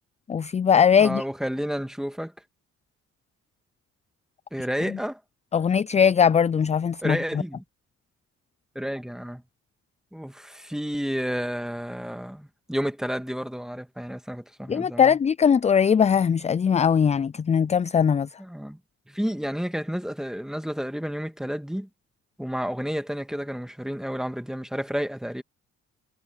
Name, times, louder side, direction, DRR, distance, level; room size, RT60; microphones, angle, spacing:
voice 1, 0.3-1.2 4.9-5.0 5.5-7.2 14.7-18.3, left 7 dB, 25° left, 0.4 m, -20 dB
voice 2, 1.0-2.3 4.5-5.2 7.0-7.6 8.8-9.4 10.1-15.2 18.4-18.8 19.1-21.9 22.4-25.4, equal, ahead, 2.0 m, -31 dB
cardioid pair, 90°, 30 cm